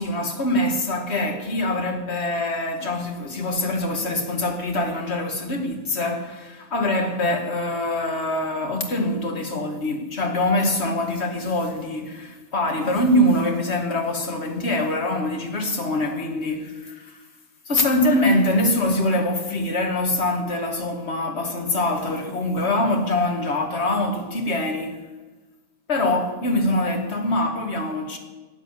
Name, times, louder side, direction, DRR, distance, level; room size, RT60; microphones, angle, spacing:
voice 1, 0.0-17.2 17.7-25.0 25.9-28.2, left 1 dB, 65° left, 2.1 m, -24 dB
12.0 x 8.9 x 9.7 m
omnidirectional pair, 1.2 m